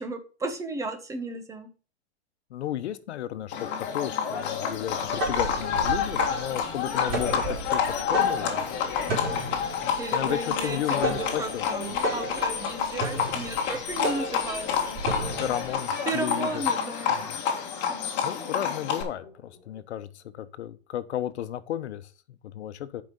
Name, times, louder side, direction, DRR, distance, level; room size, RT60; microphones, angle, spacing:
voice 1, 0.0-1.7 10.0-15.0 16.1-17.2, right 3 dB, 10° right, 1.2 m, -34 dB
voice 2, 2.5-9.6 10.1-11.6 15.4-16.6 17.1-17.3 18.2-23.0, left 11 dB, 80° left, 1.1 m, -34 dB
Livestock farm animals working animals, 3.5-19.0, left 7 dB, 35° left, 1.9 m, -29 dB
sound 1, 4.9-15.7, right 1 dB, 30° right, 4.3 m, -33 dB
sound 2, 5.4-20.1, left 3 dB, 10° left, 5.3 m, -49 dB
8.7 x 5.3 x 5.3 m
supercardioid pair, 150°, 33 cm